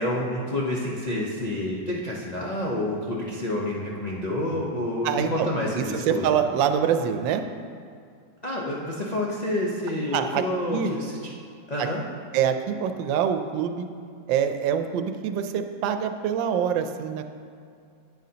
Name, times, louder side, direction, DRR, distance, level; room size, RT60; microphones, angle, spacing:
voice 1, 0.0-6.3 8.4-11.2 11.7-12.0, left 1 dB, 80° left, -4 dB, 0.3 m, -28 dB
voice 2, 5.0-5.5 5.8-7.4 10.1-10.4 10.7-10.9 11.8-11.9 12.3-13.9 14.3-17.2, right 8 dB, 80° right, 8 dB, 1.3 m, -25 dB
9.1 x 8.9 x 2.8 m, 2.3 s
omnidirectional pair, 2.0 m